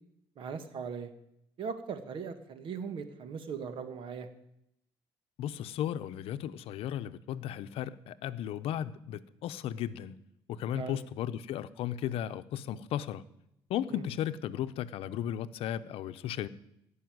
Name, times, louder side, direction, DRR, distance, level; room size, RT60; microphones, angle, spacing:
voice 1, 0.4-1.1 1.6-4.3 10.7-11.0 13.9-14.0, right 6 dB, 60° right, 1.6 m, -39 dB
voice 2, 5.4-10.1 10.5-13.2 13.7-16.5, left 10 dB, 75° left, 0.7 m, -35 dB
17.0 x 5.6 x 9.5 m
cardioid pair, 105°, 10 cm